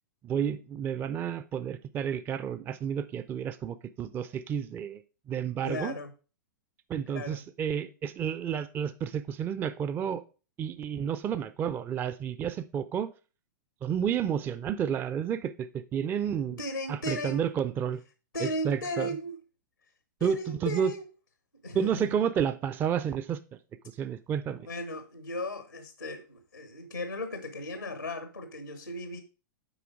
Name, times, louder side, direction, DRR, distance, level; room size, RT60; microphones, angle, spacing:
voice 1, 0.2-5.0 5.3-6.0 6.9-10.2 10.6-13.1 13.8-16.6 16.9-18.0 18.4-19.2 20.2-20.9 21.7-23.4 24.0-24.6, right 8 dB, 20° right, 0.4 m, -31 dB
voice 2, 5.6-6.1 7.1-7.4 16.5-17.5 18.3-19.4 20.2-21.0 21.6-22.2 24.6-29.2, left 1 dB, 85° left, 1.0 m, -36 dB
7.9 x 4.9 x 4.8 m
figure-of-eight pair, 100°, 11 cm